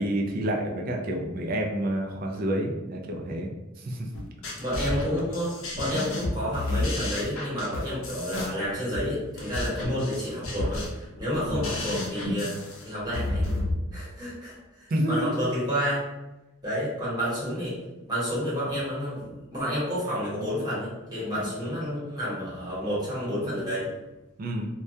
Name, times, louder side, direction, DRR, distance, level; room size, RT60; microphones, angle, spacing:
voice 1, 0.0-3.5 3.8-4.1 14.9-15.3 21.4-21.5 24.4-24.7, right 1 dB, 45° right, 2 dB, 0.3 m, -28 dB
sound 1, 4.1-13.7, left 1 dB, 85° left, 0.6 m, -31 dB
voice 2, 4.6-13.5 13.9-16.0 16.6-17.8 18.1-23.9, equal, 20° right, -9 dB, 1.1 m, -30 dB
2.2 x 2.2 x 2.6 m, 1.0 s
head